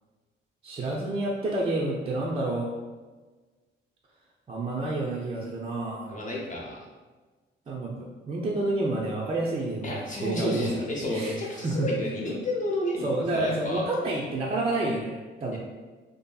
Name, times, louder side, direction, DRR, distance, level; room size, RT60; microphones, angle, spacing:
voice 1, 0.6-2.7 4.5-6.2 7.7-10.8 11.1-11.4 11.6-11.9 13.0-15.6, right 2 dB, 30° right, -3 dB, 0.4 m, -29 dB
voice 2, 6.1-6.8 9.8-13.8 15.5-15.6, left 1 dB, 40° left, -2 dB, 0.7 m, -31 dB
2.6 x 2.5 x 2.2 m, 1.3 s
cardioid pair, 90°, 20 cm